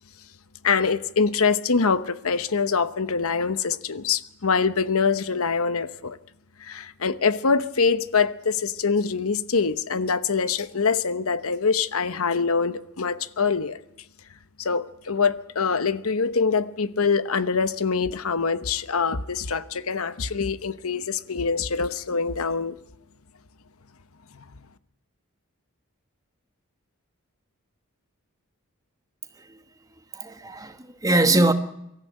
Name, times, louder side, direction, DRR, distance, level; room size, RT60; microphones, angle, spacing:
voice 1, 0.6-6.2 6.6-13.8 14.6-22.8, left 5 dB, 75° left, 0.9 m, -24 dB
voice 2, 30.1-31.5, right 2 dB, 15° right, 1.2 m, -22 dB
24.0 x 14.0 x 9.1 m
head